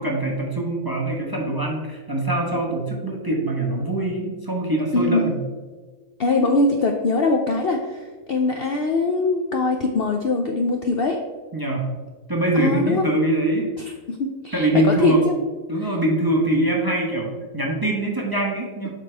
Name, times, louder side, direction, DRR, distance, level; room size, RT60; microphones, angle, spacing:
voice 1, 0.0-5.4 11.5-11.9 12.3-13.8 14.5-15.3 15.7-18.9, right 1 dB, 20° right, 0 dB, 0.8 m, -23 dB
voice 2, 4.9-5.4 6.2-11.2 12.5-13.1 14.1-15.4 15.8-15.9, left 3 dB, 60° left, 3 dB, 0.6 m, -22 dB
7.5 x 6.1 x 3.4 m, 1.4 s
omnidirectional pair, 1.5 m